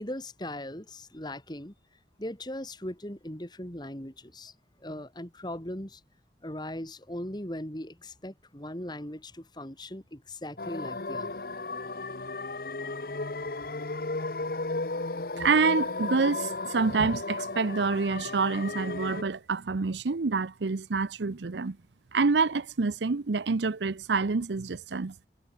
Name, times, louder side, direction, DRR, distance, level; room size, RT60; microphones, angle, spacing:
voice 1, 0.0-1.7 2.2-4.5 4.8-6.0 6.4-11.4, left 1 dB, 25° left, 3.3 m, -39 dB
sound 1, 10.6-19.2, left 3 dB, 55° left, 1.2 m, -34 dB
voice 2, 15.4-21.8 22.1-25.1, right 4 dB, 80° right, 0.7 m, -27 dB
head